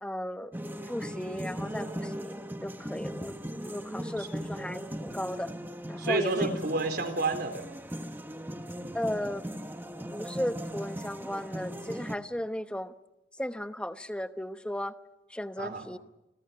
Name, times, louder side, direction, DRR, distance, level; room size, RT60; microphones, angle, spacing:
voice 1, 0.0-0.5 0.9-3.3 3.7-5.5 5.9-6.5 8.9-9.4 10.1-12.9 13.4-14.9 15.3-16.0, left 1 dB, 5° left, 9 dB, 0.9 m, -35 dB
sound 1, 0.5-12.2, equal, 10° right, 1.5 m, -38 dB
voice 2, 6.0-7.7 15.6-15.9, right 3 dB, 60° right, 7 dB, 3.9 m, -30 dB
29.5 x 25.5 x 5.7 m, 0.91 s
head